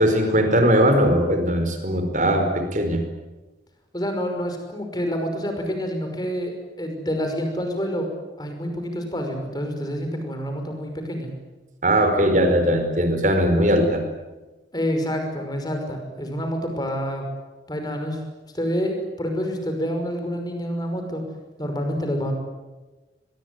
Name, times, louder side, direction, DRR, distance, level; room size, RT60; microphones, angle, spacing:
voice 1, 0.0-3.0 11.8-14.0, equal, 45° right, 6 dB, 4.7 m, -19 dB
voice 2, 3.9-8.1 8.4-11.3 14.7-17.3 17.7-18.2 18.5-21.2 21.6-22.3, equal, 20° left, 4 dB, 5.7 m, -27 dB
24.5 x 22.0 x 9.7 m, 1.2 s
head